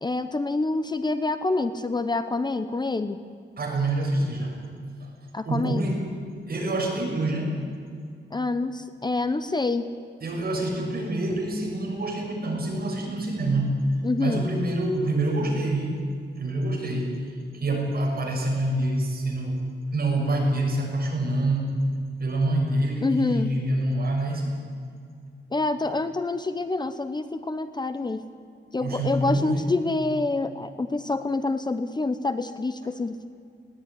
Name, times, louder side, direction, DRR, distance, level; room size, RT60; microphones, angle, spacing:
voice 1, 0.0-3.2 5.3-5.8 8.3-9.9 14.0-14.4 23.0-23.5 25.5-28.2 28.7-33.3, left 3 dB, 20° left, 11 dB, 0.8 m, -27 dB
voice 2, 3.6-4.6 5.0-5.1 5.4-6.1 6.5-7.6 10.2-13.8 14.2-16.0 16.4-17.2 17.5-19.6 19.9-21.8 22.2-24.6 28.8-29.7, right 1 dB, 50° right, -1 dB, 6.4 m, -26 dB
20.5 x 17.5 x 9.9 m, 2.2 s
wide cardioid pair, 145°, 19 cm